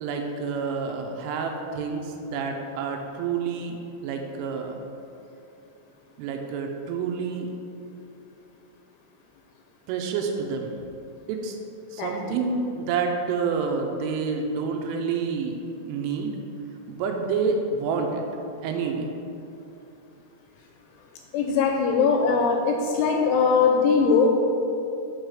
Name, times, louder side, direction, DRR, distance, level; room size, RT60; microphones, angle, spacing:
voice 1, 0.0-4.8 6.2-7.5 9.9-10.7 11.3-11.6 11.9-16.3 16.9-18.2 18.6-19.1, right 5 dB, 80° right, 3 dB, 3.0 m, -28 dB
voice 2, 12.0-12.3 21.3-24.3, left 5 dB, 85° left, 1 dB, 2.8 m, -21 dB
7.3 x 4.8 x 6.3 m, 2.7 s
omnidirectional pair, 5.9 m